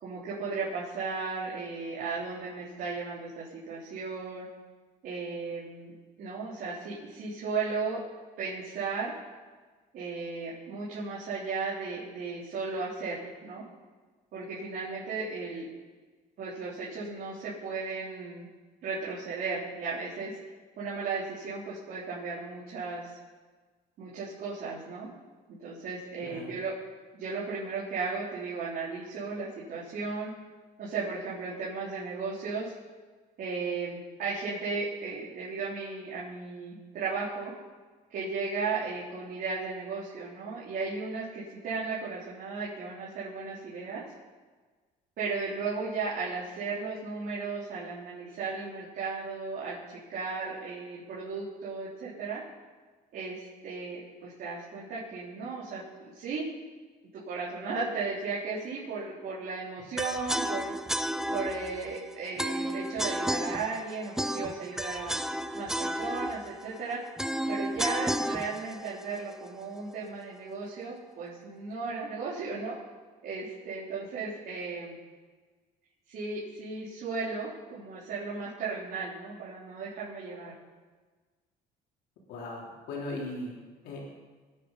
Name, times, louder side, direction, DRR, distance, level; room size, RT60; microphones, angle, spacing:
voice 1, 0.0-4.5 5.0-8.0 8.4-9.1 9.9-13.6 14.3-15.7 16.4-18.5 18.8-20.4 20.8-23.1 24.0-25.1 25.6-26.7 27.1-30.3 30.8-32.7 33.4-37.5 38.1-44.0 45.2-52.4 53.1-56.5 57.1-60.7 61.3-65.1 65.5-67.0 67.5-72.8 73.2-75.0 76.1-80.5, right 4 dB, 65° right, -8 dB, 4.0 m, -35 dB
voice 2, 26.2-26.5 82.3-83.5 83.8-84.0, left 2 dB, 85° left, -3 dB, 3.7 m, -38 dB
sound 1, 60.0-70.0, equal, 5° right, 0.5 m, -33 dB
21.0 x 9.3 x 5.5 m, 1.4 s
cardioid pair, 110°, 17 cm